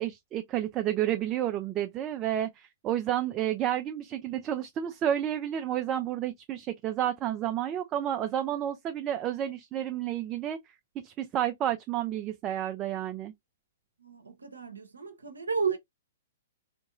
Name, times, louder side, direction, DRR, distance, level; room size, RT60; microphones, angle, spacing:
voice 1, 0.0-13.3, right 11 dB, 25° right, 0.4 m, -31 dB
voice 2, 14.0-15.8, right 5 dB, 80° right, 0.6 m, -32 dB
3.5 x 2.9 x 2.5 m
figure-of-eight pair, 110°, 0 cm